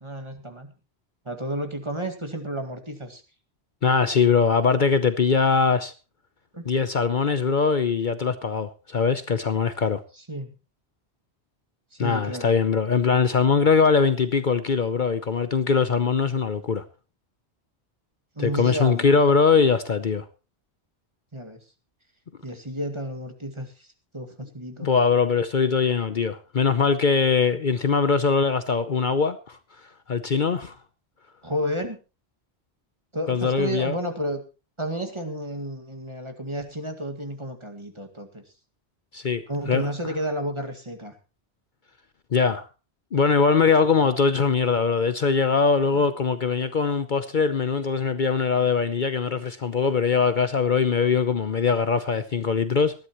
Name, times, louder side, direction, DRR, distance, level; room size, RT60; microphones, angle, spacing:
voice 1, 0.0-0.7 1.3-3.2 6.5-6.6 10.2-10.5 11.9-12.5 18.4-19.2 21.3-21.6 22.4-23.9 24.1-24.9 31.4-32.0 33.1-34.4 34.8-38.4 39.5-41.1 45.9-46.0, equal, 25° right, 2.1 m, -31 dB
voice 2, 3.8-5.9 6.7-10.0 12.0-16.8 18.4-20.3 24.8-29.6 30.1-30.8 33.3-34.0 39.1-39.4 39.7-39.9 42.3-42.7 43.1-52.9, left 5 dB, 50° left, 0.9 m, -22 dB
19.5 x 13.0 x 3.1 m
omnidirectional pair, 1.1 m